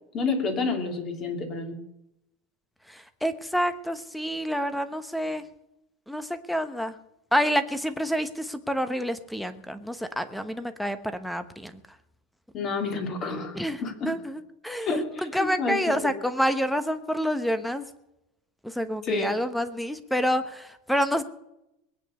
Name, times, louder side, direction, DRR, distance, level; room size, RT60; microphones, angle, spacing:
voice 1, 0.1-1.8 12.5-14.1 14.8-16.1 19.0-19.3, left 4 dB, 30° left, 4 dB, 3.2 m, -29 dB
voice 2, 2.9-5.4 6.1-6.9 7.3-11.8 13.5-17.9 18.6-21.2, equal, ahead, 11 dB, 1.1 m, -28 dB
21.0 x 9.1 x 6.6 m, 0.86 s
supercardioid pair, 150°, 0 cm